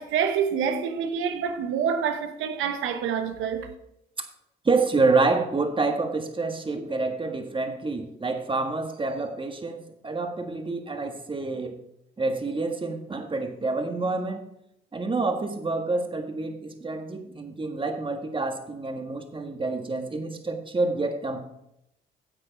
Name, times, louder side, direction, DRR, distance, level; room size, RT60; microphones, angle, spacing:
voice 1, 0.0-3.7, right 7 dB, 90° right, 1.1 m, -27 dB
voice 2, 4.6-11.7 12.2-14.4 14.9-21.4, right 3 dB, 25° right, 1.7 m, -27 dB
10.0 x 7.8 x 4.1 m
cardioid pair, 90°, 20 cm